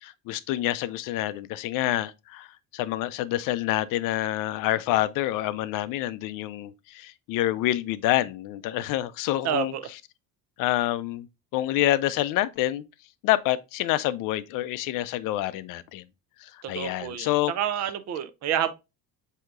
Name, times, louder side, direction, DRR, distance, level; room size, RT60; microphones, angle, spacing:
voice 1, 0.0-2.5 2.7-9.7 10.6-11.3 11.5-12.8 13.2-16.0 16.4-17.5, left 14 dB, 65° left, 0.5 m, -27 dB
voice 2, 9.4-9.9 16.6-18.7, right 10 dB, 50° right, 0.6 m, -29 dB
7.7 x 2.8 x 2.4 m
cardioid pair, 145°, 35 cm